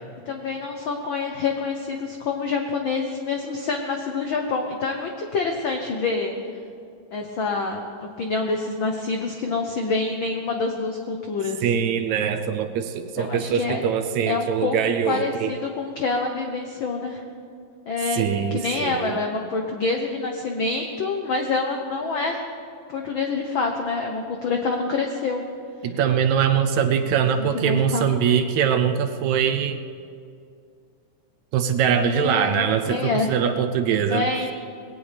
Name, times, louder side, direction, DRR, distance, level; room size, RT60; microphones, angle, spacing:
voice 1, 0.3-6.3 7.1-11.6 13.2-13.8 14.3-14.8 15.1-17.2 17.9-18.2 18.5-22.4 22.9-25.4 27.4-28.1 32.0-33.3 34.1-34.5, left 4 dB, 75° left, 3 dB, 1.1 m, -26 dB
voice 2, 11.6-15.5 18.1-19.2 25.8-29.8 31.5-34.2, right 8 dB, 75° right, 7 dB, 1.9 m, -22 dB
20.5 x 17.0 x 3.5 m, 2.4 s
omnidirectional pair, 3.6 m